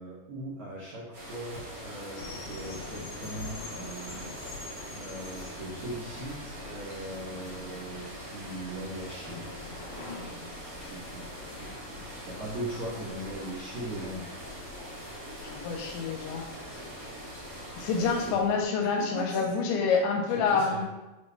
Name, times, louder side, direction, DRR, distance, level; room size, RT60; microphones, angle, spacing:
voice 1, 0.0-9.5 10.8-14.4 18.0-18.4 18.8-20.0 20.3-20.8, right 1 dB, 75° right, -10 dB, 1.6 m, -40 dB
sound 1, 1.1-18.3, right 1 dB, 60° right, 1.0 m, -43 dB
sound 2, 2.2-18.7, left 4 dB, 70° left, 2.6 m, -46 dB
voice 2, 15.4-16.4 17.8-20.9, left 5 dB, 90° left, 1 dB, 2.7 m, -27 dB
7.5 x 3.2 x 2.2 m, 1.0 s
omnidirectional pair, 4.6 m